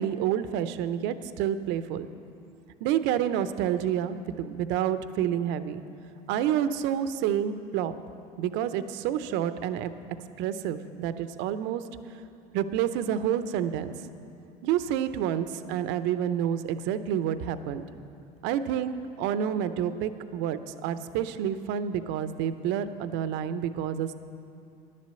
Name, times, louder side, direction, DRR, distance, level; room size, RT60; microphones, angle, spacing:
voice 1, 0.0-2.1 2.8-5.8 6.3-7.9 8.4-9.9 10.4-11.8 12.5-13.9 14.6-17.8 18.4-24.1, right 9 dB, 65° right, 12 dB, 0.6 m, -29 dB
10.5 x 7.5 x 7.6 m, 2.7 s
hypercardioid pair, 85°, 20 cm